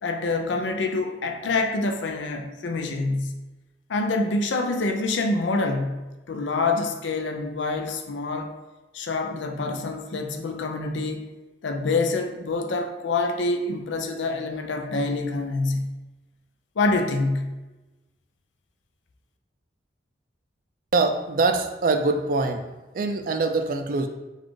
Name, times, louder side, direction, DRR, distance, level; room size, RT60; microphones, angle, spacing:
voice 1, 0.0-3.4 3.9-8.5 8.9-11.3 11.6-15.9 16.8-17.6, left 3 dB, 90° left, 5 dB, 0.5 m, -26 dB
voice 2, 20.9-22.7 22.9-24.1, right 3 dB, 50° right, 6 dB, 0.4 m, -23 dB
4.0 x 2.4 x 4.7 m, 1.1 s
head